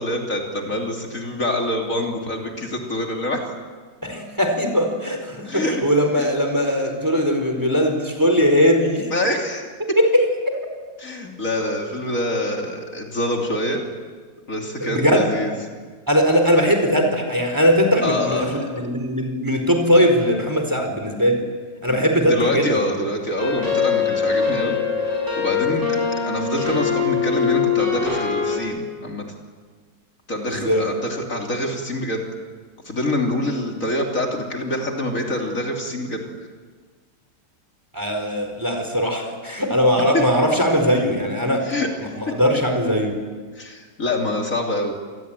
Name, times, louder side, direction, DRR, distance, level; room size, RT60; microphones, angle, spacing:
voice 1, 0.0-3.5 5.5-5.8 6.2-6.3 9.1-9.6 11.0-13.8 14.5-15.5 18.0-18.8 21.9-22.0 22.3-24.8 25.4-26.0 26.2-29.3 30.3-32.3 32.9-36.2 40.1-40.2 41.6-41.9 43.6-44.9, left 1 dB, 55° left, 1 dB, 3.6 m, -25 dB
voice 2, 4.0-9.1 9.8-10.3 14.8-15.3 16.1-21.4 21.8-22.7 30.5-30.9 37.9-41.7 42.0-43.2, equal, 10° right, 4 dB, 4.4 m, -20 dB
sound 1, 23.4-28.6, left 6 dB, 70° right, 6.8 m, -22 dB
27.0 x 21.0 x 9.1 m, 1.5 s
omnidirectional pair, 1.7 m